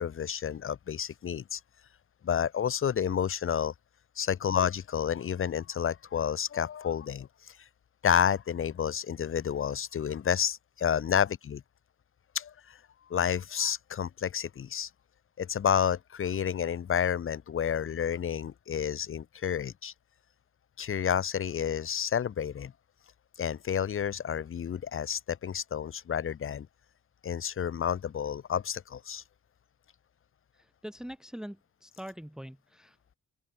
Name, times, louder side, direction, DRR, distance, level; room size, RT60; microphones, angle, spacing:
voice 1, 0.0-1.6 2.2-3.7 4.2-7.3 8.0-11.6 12.3-12.8 13.1-14.9 15.4-19.9 20.8-22.7 23.4-26.7 27.2-29.2, left 8 dB, 45° left, 0.7 m, -30 dB
voice 2, 30.8-31.6 31.8-33.2, equal, ahead, 1.8 m, -43 dB
open air
cardioid pair, 65°, 30 cm